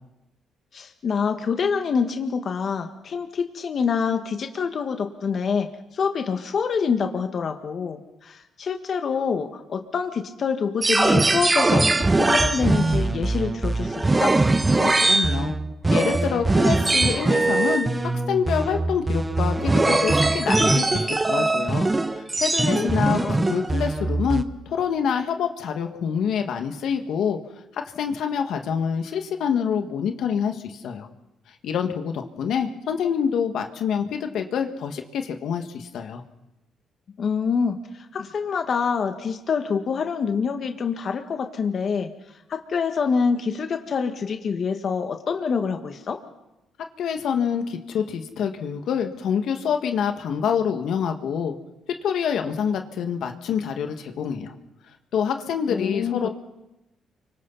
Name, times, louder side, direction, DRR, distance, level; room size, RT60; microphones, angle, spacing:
voice 1, 0.7-14.4 22.7-22.9 23.1-23.4 37.2-42.1 42.5-46.2 55.7-56.3, left 6 dB, 55° left, 5 dB, 1.7 m, -26 dB
sound 1, 10.8-24.4, right 2 dB, 20° right, 1.1 m, -21 dB
voice 2, 14.8-15.5 15.9-21.0 21.3-21.9 22.2-27.4 27.7-31.1 31.6-36.2 47.0-51.5 52.0-54.5 55.1-56.3, left 7 dB, 75° left, 5 dB, 2.0 m, -26 dB
30.0 x 25.0 x 4.2 m, 0.95 s
cardioid pair, 90°, 0 cm